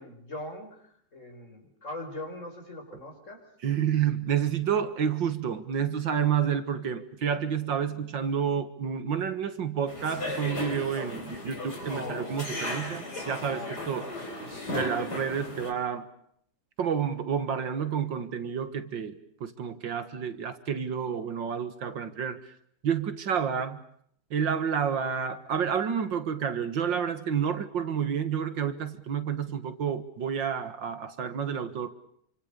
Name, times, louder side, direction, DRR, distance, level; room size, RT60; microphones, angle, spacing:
voice 1, 0.0-3.4, left 1 dB, 40° left, 4 dB, 5.3 m, -41 dB
voice 2, 3.6-14.1 14.7-16.1 16.8-22.5 22.8-23.8 24.3-31.9, right 7 dB, 70° right, 11 dB, 2.3 m, -29 dB
sound 1, 9.9-15.7, left 1 dB, 55° left, 5.5 m, -36 dB
28.0 x 25.5 x 6.9 m, 0.69 s
omnidirectional pair, 2.1 m